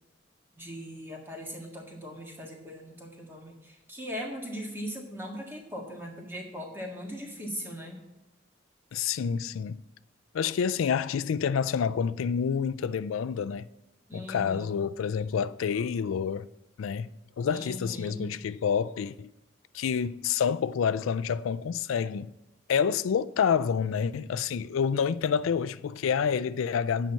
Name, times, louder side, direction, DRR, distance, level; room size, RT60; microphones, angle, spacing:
voice 1, 0.6-8.0 14.1-14.7 17.5-18.3, equal, 10° right, 1.7 m, -39 dB
voice 2, 8.9-9.8 10.3-13.7 14.1-16.5 16.8-17.1 17.4-19.3 19.7-22.3 22.7-27.1, left 7 dB, 90° left, 0.4 m, -28 dB
8.9 x 5.8 x 8.3 m
head